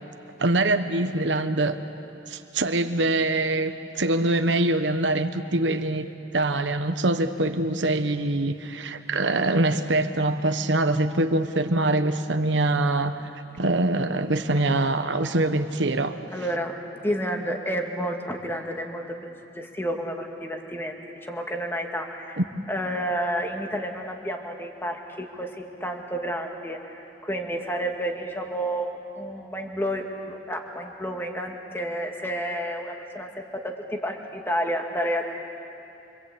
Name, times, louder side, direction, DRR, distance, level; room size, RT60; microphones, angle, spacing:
voice 1, 0.4-1.8 2.3-13.2 13.6-16.2, right 2 dB, 85° right, 8 dB, 1.2 m, -24 dB
voice 2, 16.3-22.4 22.7-35.3, equal, 15° left, 2 dB, 2.2 m, -30 dB
26.0 x 25.5 x 8.6 m, 2.8 s
head